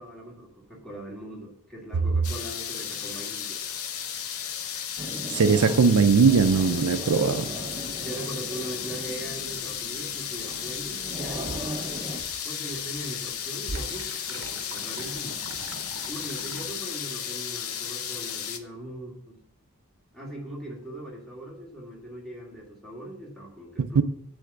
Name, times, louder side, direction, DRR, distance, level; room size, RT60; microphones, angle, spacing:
voice 1, 0.0-3.6 7.3-7.5 8.0-11.9 12.4-15.4 16.1-19.4 20.1-24.0, right 1 dB, ahead, 1.8 m, -40 dB
sound 1, 2.2-18.6, left 8 dB, 80° left, 0.7 m, -34 dB
sound 2, 5.0-12.2, right 1 dB, 20° right, 0.5 m, -38 dB
voice 2, 5.3-7.4 23.8-24.0, right 5 dB, 85° right, 0.5 m, -20 dB
sound 3, 11.0-12.4 12.7-16.7, right 2 dB, 65° right, 0.8 m, -42 dB
8.4 x 3.5 x 6.7 m
head